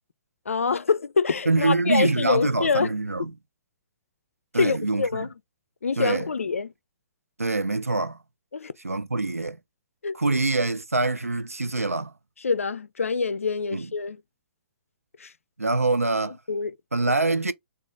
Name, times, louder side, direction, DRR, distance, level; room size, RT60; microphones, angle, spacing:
voice 1, 0.5-2.9 4.5-5.3 5.8-6.7 8.5-8.7 10.0-10.2 12.4-14.2 15.2-15.3 16.5-16.7, left 5 dB, 75° left, 0.4 m, -25 dB
voice 2, 1.5-3.3 4.5-5.3 6.0-6.2 7.4-8.2 8.8-9.6 10.1-12.1 13.7-13.9 15.6-16.4 16.9-17.5, right 3 dB, 90° right, 0.5 m, -25 dB
3.9 x 2.4 x 3.5 m
figure-of-eight pair, 120°, 8 cm